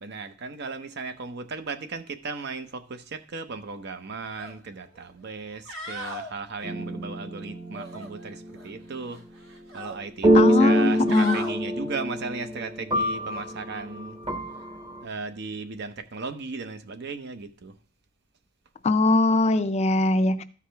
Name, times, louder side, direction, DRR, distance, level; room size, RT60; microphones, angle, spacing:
voice 1, 0.0-9.2 9.7-14.2 15.0-17.7, right 4 dB, 55° right, 0.7 m, -36 dB
sound 1, 4.3-4.5 4.9-5.0 5.5-6.3 7.7-8.7 9.0-10.0 10.7-11.5 13.2-13.4, right 1 dB, 75° right, 1.9 m, -38 dB
sound 2, 6.6-8.4 10.2-15.0, equal, 25° right, 1.0 m, -25 dB
voice 2, 10.3-11.4 18.8-20.4, left 2 dB, 35° left, 0.4 m, -21 dB
13.0 x 4.8 x 3.3 m
head